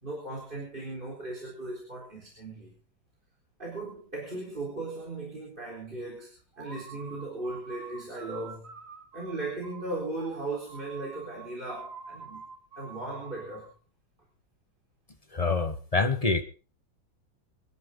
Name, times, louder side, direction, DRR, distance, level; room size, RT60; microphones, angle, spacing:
voice 1, 0.0-2.7 3.6-8.7 9.1-12.4 12.8-13.7, right 2 dB, 25° right, -1 dB, 4.3 m, -37 dB
sound 1, 6.5-13.7, right 5 dB, 45° right, 1.8 m, -46 dB
voice 2, 15.3-16.4, left 4 dB, 30° left, 9 dB, 0.7 m, -26 dB
26.0 x 11.0 x 3.8 m, 0.36 s
omnidirectional pair, 2.2 m